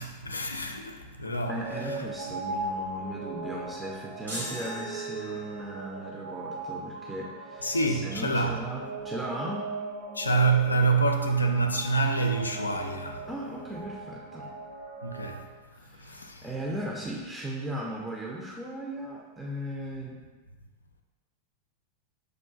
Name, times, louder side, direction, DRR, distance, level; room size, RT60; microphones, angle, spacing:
voice 1, 0.0-1.6 1.9-2.0 7.6-8.6 10.1-13.3 15.0-15.5 15.9-16.5, right 3 dB, 80° left, 0.3 m, -27 dB
sound 1, 1.3-15.4, right 3 dB, 55° right, 0.7 m, -39 dB
voice 2, 1.5-9.7 13.3-14.5 15.7-20.2, right 1 dB, 10° right, 0.5 m, -37 dB
sound 2, 4.3-5.8, equal, 85° right, 1.5 m, -39 dB
6.3 x 2.4 x 2.3 m
figure-of-eight pair, 90°, 0 cm